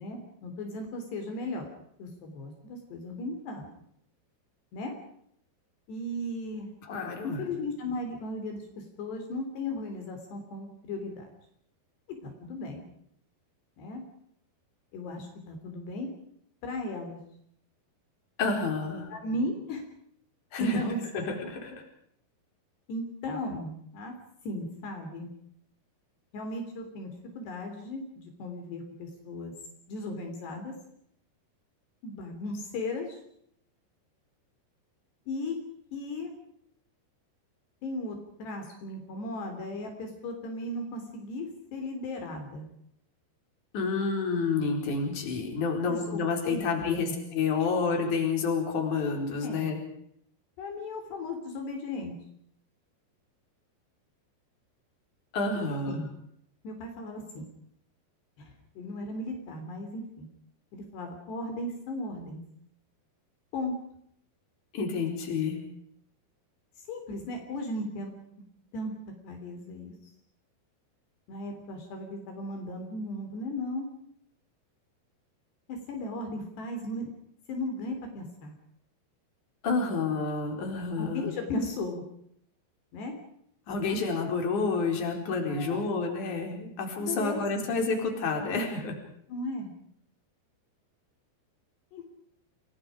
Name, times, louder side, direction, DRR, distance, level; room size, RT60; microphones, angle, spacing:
voice 1, 0.0-1.7 2.0-3.7 4.7-4.9 5.9-6.7 7.2-11.3 12.1-12.8 13.8-14.0 14.9-16.1 16.6-17.2 19.1-19.8 20.6-21.0 22.9-24.1 24.5-25.3 26.3-29.5 29.9-30.7 32.0-33.2 35.3-35.6 35.9-36.3 37.8-42.7 45.9-47.1 49.4-49.7 50.6-52.1 55.6-56.1 56.6-57.5 58.4-60.3 60.7-62.4 63.5-63.7 66.9-68.1 68.7-68.9 69.2-69.9 71.3-73.9 75.7-77.1 77.5-78.6 81.0-82.0 82.9-83.1 85.5-85.8 87.0-87.7 89.3-89.7 91.9-92.1, left 1 dB, 70° left, 4 dB, 5.5 m, -36 dB
voice 2, 6.9-7.4 18.4-19.1 20.5-20.8 21.1-21.8 43.7-49.8 55.3-56.0 64.7-65.6 79.6-81.3 83.7-89.0, left 4 dB, 45° left, 3 dB, 5.7 m, -29 dB
29.5 x 21.5 x 5.1 m, 0.70 s
omnidirectional pair, 5.0 m